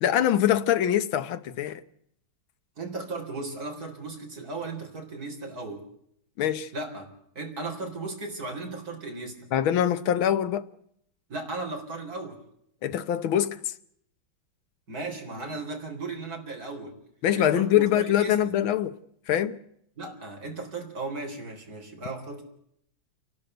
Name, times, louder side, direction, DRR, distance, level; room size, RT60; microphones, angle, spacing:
voice 1, 0.0-1.8 6.4-6.7 9.5-10.6 12.8-13.7 17.2-18.9 19.3-19.6, left 11 dB, 70° left, 1.8 m, -24 dB
voice 2, 2.8-5.9 6.7-7.1 7.4-9.4 11.3-12.4 14.9-17.0 17.3-18.4 20.0-22.4, right 3 dB, 45° right, 4.4 m, -36 dB
28.5 x 12.0 x 7.9 m
omnidirectional pair, 2.4 m